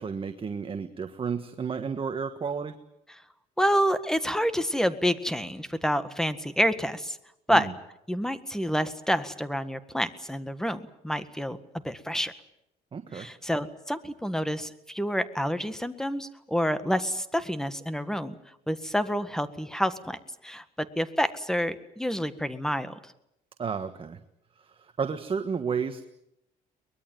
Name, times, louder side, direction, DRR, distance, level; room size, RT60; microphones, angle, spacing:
voice 1, 0.0-2.8 7.5-7.7 12.9-13.3 23.6-24.2 24.6-26.0, right 6 dB, 30° right, 8 dB, 1.4 m, -32 dB
voice 2, 3.6-7.2 7.5-7.7 8.1-11.6 11.8-12.3 13.1-18.4 18.7-20.2 20.4-20.6 20.9-23.0, equal, 5° left, 12 dB, 1.7 m, -28 dB
23.0 x 20.5 x 9.3 m, 0.82 s
cardioid pair, 110°, 17 cm